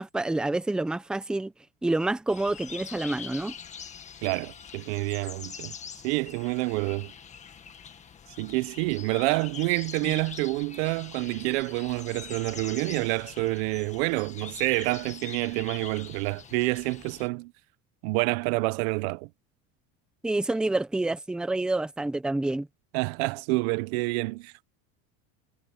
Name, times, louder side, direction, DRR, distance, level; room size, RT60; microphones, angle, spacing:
voice 1, 0.0-1.5 1.8-3.5 10.0-10.2 20.2-22.7, right 2 dB, 5° right, 0.7 m, -28 dB
sound 1, 2.3-17.3, left 7 dB, 20° left, 1.7 m, -44 dB
voice 2, 4.2-5.7 6.0-7.1 8.4-17.5 18.0-19.3 22.9-24.7, right 24 dB, 75° right, 0.7 m, -28 dB
cardioid pair, 165°, 32 cm